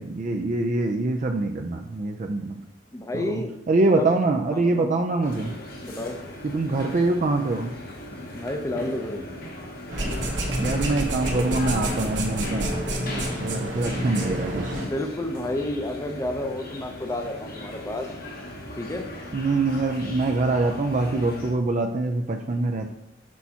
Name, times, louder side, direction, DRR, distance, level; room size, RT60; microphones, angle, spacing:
voice 1, 0.0-2.6 3.1-5.5 6.4-7.7 10.5-12.8 13.4-14.7 19.3-22.9, right 2 dB, 40° right, 3 dB, 0.4 m, -24 dB
voice 2, 2.9-3.5 4.0-4.1 4.5-4.9 5.8-6.2 8.3-9.3 14.8-18.1 18.8-19.1, left 1 dB, 15° left, 5 dB, 0.6 m, -30 dB
sound 1, 5.2-21.5, left 1 dB, 55° left, 1.1 m, -38 dB
sound 2, 9.9-14.9, right 1 dB, 85° right, 1.0 m, -28 dB
6.2 x 5.6 x 2.8 m, 0.80 s
head